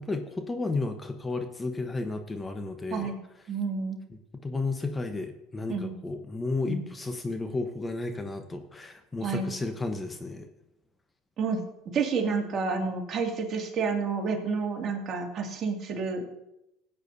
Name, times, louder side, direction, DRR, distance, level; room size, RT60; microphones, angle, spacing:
voice 1, 0.0-3.1 4.1-10.5, left 3 dB, 20° left, 7 dB, 1.0 m, -33 dB
voice 2, 3.5-4.0 5.7-5.9 6.7-6.9 9.2-9.5 11.4-11.6 11.9-16.3, right 5 dB, 45° right, 1 dB, 2.4 m, -29 dB
16.5 x 8.9 x 2.7 m, 0.88 s
hypercardioid pair, 80°, 0 cm